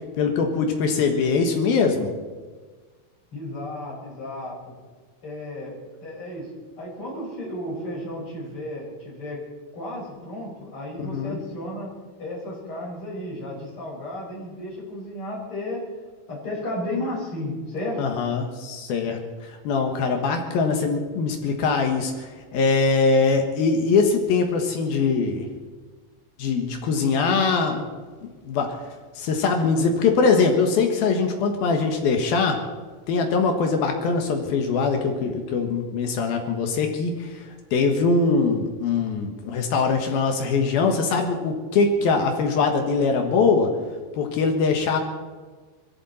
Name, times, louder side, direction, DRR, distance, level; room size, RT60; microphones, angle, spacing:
voice 1, 0.2-2.1 11.1-11.4 18.0-25.4 26.4-27.9 28.2-28.8 29.2-32.6 33.1-43.7 44.2-45.0, left 4 dB, 65° left, 4 dB, 2.5 m, -22 dB
voice 2, 3.3-4.8 5.2-5.7 6.0-6.5 6.8-9.4 9.7-11.9 12.2-15.8 16.3-18.0, left 1 dB, 25° left, -4 dB, 5.9 m, -33 dB
22.0 x 15.0 x 4.3 m, 1.4 s
omnidirectional pair, 5.9 m